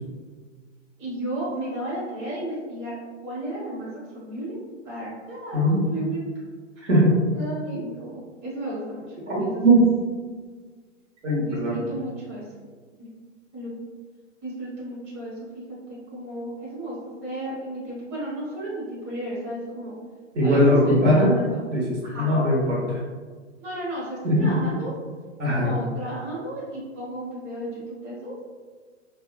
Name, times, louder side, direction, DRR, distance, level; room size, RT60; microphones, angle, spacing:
voice 1, 1.0-2.9 3.2-4.6 4.8-5.6 5.9-6.5 6.8-6.9 7.3-9.8 11.4-12.4 13.0-13.1 13.5-13.7 14.4-17.0 17.2-19.9 20.4-21.7 22.0-22.3 23.6-24.9 25.5-28.4, right 1 dB, 30° right, -8 dB, 1.4 m, -33 dB
voice 2, 6.8-7.2 9.3-9.8 11.2-11.8 20.3-21.4 21.7-23.0 24.2-24.6 25.4-25.7, equal, 70° right, -6 dB, 1.3 m, -20 dB
2.8 x 2.3 x 2.3 m, 1.5 s
hypercardioid pair, 115°, 37 cm